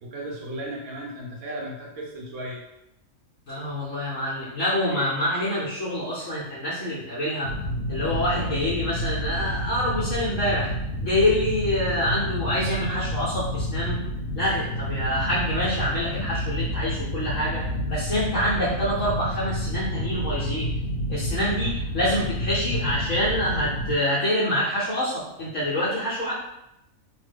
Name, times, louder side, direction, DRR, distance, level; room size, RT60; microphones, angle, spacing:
voice 1, 0.0-2.6, right 1 dB, 80° right, -1 dB, 1.2 m, -35 dB
voice 2, 3.5-7.5 7.9-10.7 11.0-14.0 14.3-20.7 21.1-26.3, left 1 dB, 60° left, -9 dB, 1.1 m, -26 dB
sound 1, 7.4-24.0, equal, 85° left, 1.2 m, -29 dB
3.1 x 2.0 x 3.3 m, 0.83 s
omnidirectional pair, 1.5 m